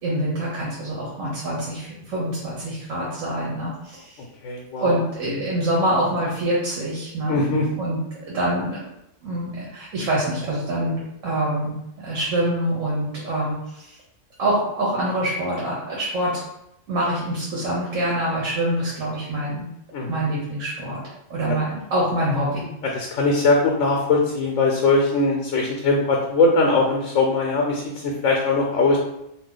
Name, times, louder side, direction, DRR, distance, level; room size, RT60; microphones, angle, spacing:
voice 1, 0.0-4.2 4.8-7.5 7.8-8.0 8.3-8.8 9.2-14.0 14.4-16.4 16.9-19.7 20.1-21.0 21.3-22.6, right 1 dB, 90° right, -5 dB, 1.2 m, -25 dB
voice 2, 4.4-5.0 7.3-7.7 19.9-20.2 21.5-21.6 22.9-29.0, left 3 dB, 85° left, 0 dB, 1.0 m, -21 dB
2.7 x 2.4 x 3.7 m, 0.83 s
omnidirectional pair, 1.3 m